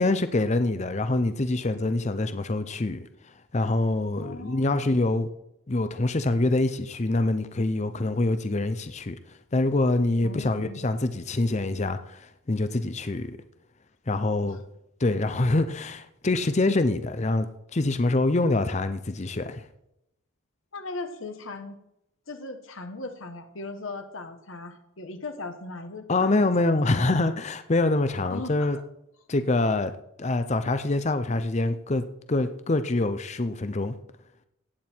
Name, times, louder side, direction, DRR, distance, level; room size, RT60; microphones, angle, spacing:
voice 1, 0.0-3.1 3.5-5.3 5.7-9.2 9.5-13.3 14.1-14.6 15.0-17.5 17.7-19.6 26.1-28.8 29.3-29.9 30.2-34.0, left 2 dB, 35° left, 0.6 m, -25 dB
voice 2, 4.2-5.2 10.2-10.8 14.4-14.6 20.7-21.8 22.3-27.2 28.3-28.8, left 2 dB, 70° left, 1.3 m, -39 dB
16.0 x 9.1 x 4.5 m
head